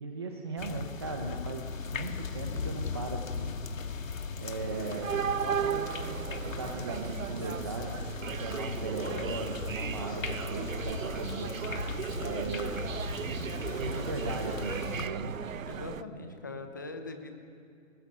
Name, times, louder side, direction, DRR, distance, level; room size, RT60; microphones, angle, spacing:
voice 1, 0.0-3.5 4.4-5.1 5.4-5.9 6.4-7.9 8.4-11.5 12.2-12.7 13.7-15.4 16.2-16.4, right 3 dB, 20° right, 2 dB, 0.9 m, -38 dB
sound 1, 0.6-15.1, left 5 dB, 80° left, 1.8 m, -38 dB
sound 2, 4.6-16.0, right 8 dB, 80° right, 0.9 m, -36 dB
voice 2, 15.6-17.3, left 3 dB, 15° left, 5 dB, 0.9 m, -41 dB
22.0 x 20.0 x 9.4 m, 2.4 s
hypercardioid pair, 180°, 40 cm